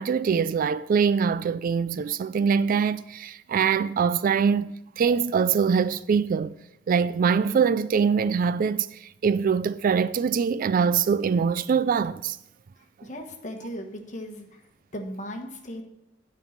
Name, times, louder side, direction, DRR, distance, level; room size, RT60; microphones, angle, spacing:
voice 1, 0.0-6.5 6.9-12.4, right 6 dB, 45° right, 0.3 m, -23 dB
voice 2, 13.0-14.5 14.9-15.8, equal, 40° left, 1.3 m, -36 dB
9.5 x 5.5 x 7.3 m
head